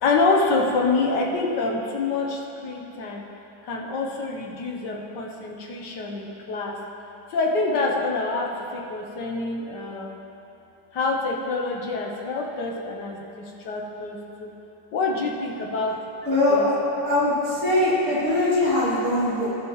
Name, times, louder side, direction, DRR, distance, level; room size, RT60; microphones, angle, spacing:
voice 1, 0.0-3.2 3.7-6.8 7.3-10.2 10.9-14.5 14.9-16.0 16.5-16.7, left 3 dB, 75° left, 0 dB, 1.6 m, -26 dB
voice 2, 16.2-16.7 17.0-19.5, left 1 dB, 40° right, -9 dB, 2.7 m, -21 dB
20.0 x 6.8 x 3.1 m, 2.9 s
omnidirectional pair, 1.9 m